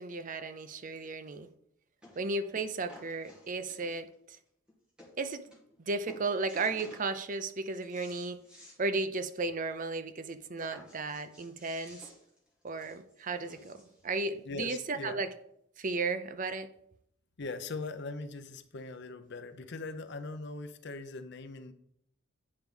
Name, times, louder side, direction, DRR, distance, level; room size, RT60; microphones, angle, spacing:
voice 1, 0.0-1.5 2.2-4.4 5.2-5.4 5.8-8.4 8.8-12.0 12.6-15.3 15.8-16.7, right 3 dB, 40° right, 10 dB, 0.6 m, -34 dB
sound 1, 1.3-1.4 2.0-2.3 2.5-4.1 4.7-4.8 5.0-5.1 5.5-5.8 6.1-7.1 7.5-8.8 9.2-9.3 9.6-9.7 10.6-14.0 14.8-14.9, left 1 dB, 5° right, 2.2 m, -54 dB
voice 2, 14.5-15.2 17.4-21.7, left 3 dB, 60° left, 9 dB, 0.7 m, -40 dB
8.7 x 4.6 x 5.4 m, 0.74 s
head